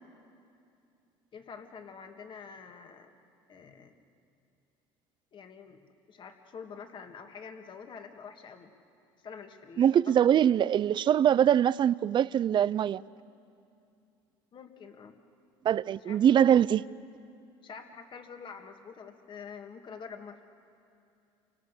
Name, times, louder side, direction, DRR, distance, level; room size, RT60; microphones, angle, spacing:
voice 1, 1.3-3.1 3.5-3.9 5.3-5.8 6.1-8.7 9.2-10.1 14.5-15.1 16.0-16.2 17.6-20.4, left 6 dB, 40° left, 2.2 m, -46 dB
voice 2, 9.8-13.0 15.6-16.8, right 9 dB, 40° right, 0.5 m, -23 dB
29.0 x 24.5 x 6.8 m
supercardioid pair, 90°, 12 cm